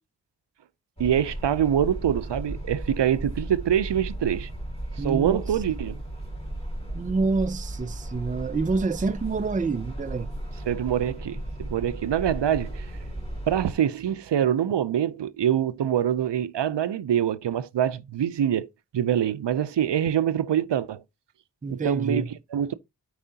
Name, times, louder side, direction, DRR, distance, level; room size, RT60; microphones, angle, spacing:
sound 1, 1.0-13.7, right 1 dB, 15° left, 2.7 m, -35 dB
voice 1, 1.0-4.5 4.9-6.0 10.7-12.9 13.5-21.0 21.7-22.7, right 9 dB, 85° right, 0.5 m, -25 dB
voice 2, 5.0-5.4 6.9-10.3 21.6-22.3, right 4 dB, 20° right, 0.4 m, -27 dB
12.5 x 4.8 x 2.7 m
wide cardioid pair, 70°, 41 cm